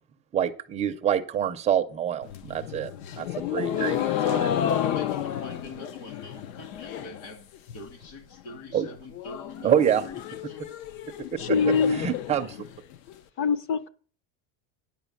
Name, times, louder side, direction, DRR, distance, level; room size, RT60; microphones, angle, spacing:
voice 1, 0.3-2.9 3.2-3.3 3.5-4.7 8.7-8.9 9.6-10.0 11.3-11.4 11.9-12.6, right 9 dB, 20° right, 7 dB, 0.4 m, -26 dB
sound 1, 2.2-7.3 7.5-8.1 8.4-8.5 8.7-8.8 9.1-13.1, left 10 dB, 75° left, 0.8 m, -31 dB
voice 2, 4.8-10.6, left 3 dB, 50° left, 5 dB, 2.4 m, -43 dB
voice 3, 11.4-12.0 13.4-13.9, left 5 dB, 30° left, 15 dB, 0.6 m, -24 dB
10.0 x 5.5 x 7.1 m, 0.41 s
cardioid pair, 165°, 40 cm